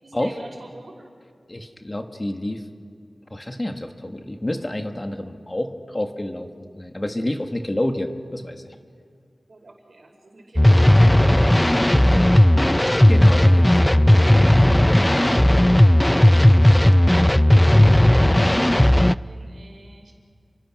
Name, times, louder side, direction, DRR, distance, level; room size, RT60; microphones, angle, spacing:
voice 1, 0.0-1.1 9.5-11.1 19.2-20.1, right 2 dB, 75° right, 2 dB, 5.2 m, -45 dB
voice 2, 1.5-2.6 3.3-8.6 13.1-14.1, left 1 dB, 30° left, 5 dB, 1.9 m, -29 dB
sound 1, 10.6-19.1, left 1 dB, 15° left, 0.5 m, -15 dB
30.0 x 24.5 x 6.2 m, 2.2 s
cardioid pair, 45°, 0 cm